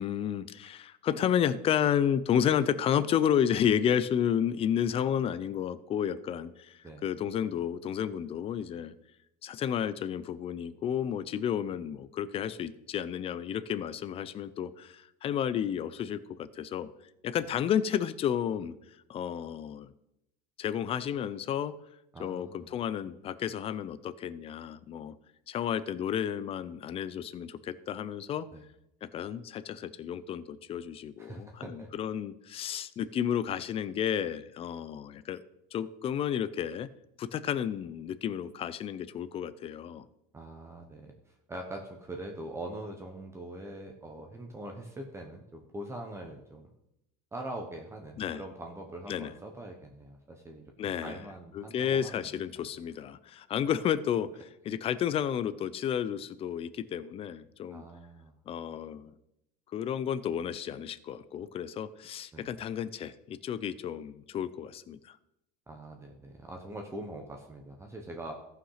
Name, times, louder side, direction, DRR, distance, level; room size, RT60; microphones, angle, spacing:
voice 1, 0.0-8.9 9.4-16.9 17.2-18.7 19.1-19.9 20.6-21.7 22.2-25.1 25.5-28.5 29.0-35.4 35.7-36.9 37.2-40.0 48.2-48.4 49.1-49.3 50.8-51.2 51.5-57.8 58.5-59.1 59.7-65.2, left 9 dB, 30° left, 16 dB, 0.5 m, -31 dB
voice 2, 22.1-22.7 28.5-28.6 31.2-31.9 40.3-46.7 47.3-52.3 57.7-58.3 62.3-62.6 65.7-68.3, right 1 dB, 15° right, 2 dB, 1.1 m, -43 dB
14.0 x 5.8 x 5.7 m, 0.84 s
cardioid pair, 145°, 20 cm